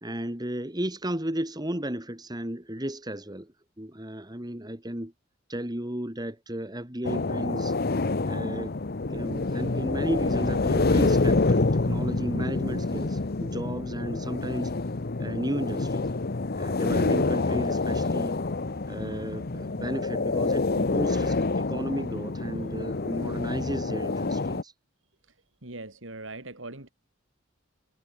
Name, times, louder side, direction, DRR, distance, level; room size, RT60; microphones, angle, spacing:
voice 1, 0.0-5.1 5.5-7.8 8.3-8.8 9.1-14.7 15.2-16.1 16.6-18.4 18.9-24.7, right 1 dB, 20° right, 3.1 m, -34 dB
sound 1, 7.0-24.6, left 3 dB, 50° left, 0.9 m, -27 dB
voice 2, 25.6-26.9, right 2 dB, 75° right, 4.2 m, -41 dB
head